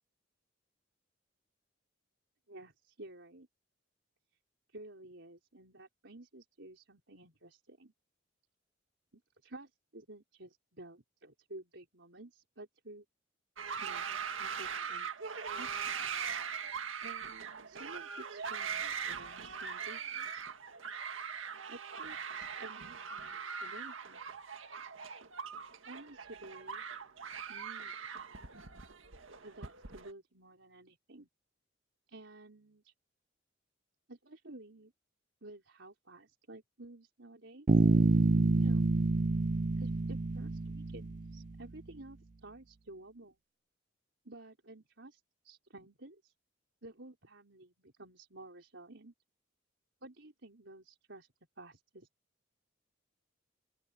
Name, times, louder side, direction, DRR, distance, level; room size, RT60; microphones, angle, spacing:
voice 1, 2.5-3.5 4.7-7.9 9.1-13.0 13.6-15.1 15.5-16.2 17.0-20.5 21.7-24.2 25.8-26.8 27.5-28.0 29.4-31.3 32.1-32.9 34.1-34.9 35.4-37.7 38.6-38.9 39.8-43.4 44.2-46.3 46.8-49.1 50.0-51.3 51.6-52.1, right 2 dB, 65° right, 5.0 m, -52 dB
sound 1, 13.6-30.1, right 6 dB, 85° right, 1.8 m, -41 dB
Bass guitar, 37.7-41.4, right 3 dB, 40° right, 0.5 m, -28 dB
open air
head